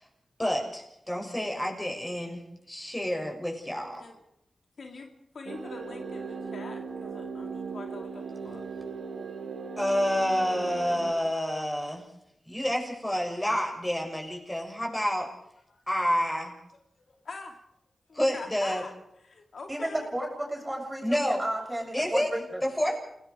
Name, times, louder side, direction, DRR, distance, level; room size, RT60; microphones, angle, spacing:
voice 1, 0.4-2.4 2.7-4.0 9.8-12.0 12.5-15.3 15.9-16.5 18.1-18.8 21.0-21.4 21.9-22.3 22.6-23.0, equal, 15° left, 1 dB, 7.3 m, -28 dB
voice 2, 4.8-5.1 5.3-8.7 15.7-15.8 17.1-17.6 18.1-19.0 19.2-20.1, left 3 dB, 70° left, 3 dB, 2.3 m, -44 dB
sound 1, 5.5-11.1, right 5 dB, 80° right, 1.7 m, -38 dB
voice 3, 19.7-22.6, right 1 dB, 20° right, 1 dB, 7.0 m, -33 dB
29.5 x 18.0 x 4.9 m, 0.76 s
cardioid pair, 50°, 0 cm